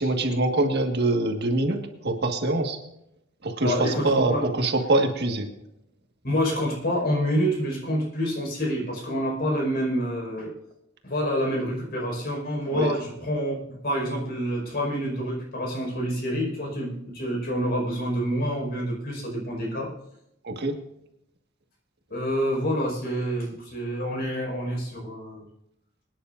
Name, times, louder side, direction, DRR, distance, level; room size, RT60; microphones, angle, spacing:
voice 1, 0.0-2.8 3.4-5.5 12.7-12.9 20.4-20.8, right 2 dB, 50° right, 3 dB, 1.7 m, -24 dB
voice 2, 3.6-4.5 6.2-10.5 11.0-19.9 22.1-25.4, equal, 50° left, -1 dB, 5.3 m, -27 dB
25.5 x 10.0 x 2.6 m, 0.81 s
head